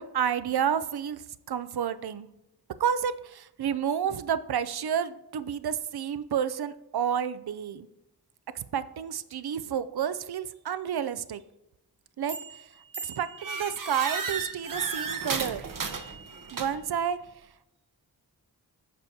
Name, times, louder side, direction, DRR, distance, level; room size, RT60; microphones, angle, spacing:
voice 1, 0.0-2.3 2.8-7.9 8.5-11.4 12.2-12.4 13.0-15.6 16.5-17.2, right 8 dB, 65° right, 14 dB, 0.5 m, -30 dB
sound 1, 12.3-12.6 12.9-17.0, right 5 dB, 50° right, 0.9 m, -34 dB
9.5 x 6.3 x 2.7 m, 0.89 s
cardioid pair, 45°, 41 cm